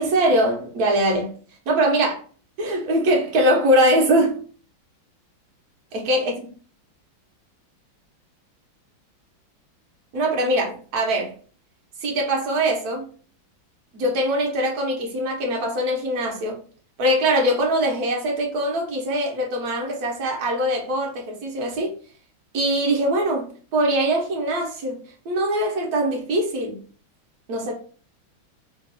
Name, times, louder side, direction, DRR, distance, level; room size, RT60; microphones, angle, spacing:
voice 1, 0.0-1.3 1.7-2.1 2.6-4.4 5.9-6.5 10.1-11.3 12.0-13.1 13.9-16.6 17.0-21.9 22.5-23.5 23.7-25.0 25.2-26.8 27.5-27.7, right 1 dB, 55° right, 1.5 m, -22 dB
3.6 x 2.6 x 4.1 m
omnidirectional pair, 2.1 m